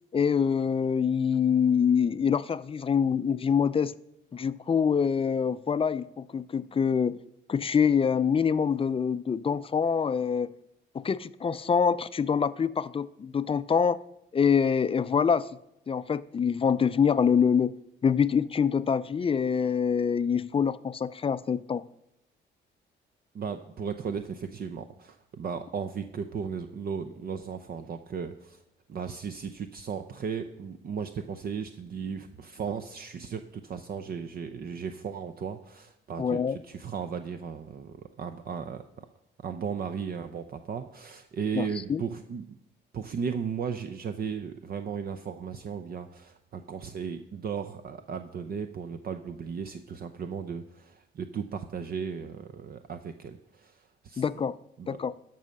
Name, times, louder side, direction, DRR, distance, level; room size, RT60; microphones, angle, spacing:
voice 1, 0.1-3.9 4.3-7.2 7.5-10.5 10.9-14.0 14.3-15.5 15.9-17.8 18.0-21.9 36.2-36.6 41.5-42.0 54.2-54.6 54.9-55.1, left 6 dB, 30° left, 16 dB, 0.4 m, -25 dB
voice 2, 23.3-28.6 28.9-38.8 39.4-42.6 42.9-54.2 54.8-55.0, right 6 dB, 50° right, 9 dB, 0.7 m, -36 dB
12.5 x 5.6 x 6.4 m, 0.83 s
cardioid pair, 90°, 20 cm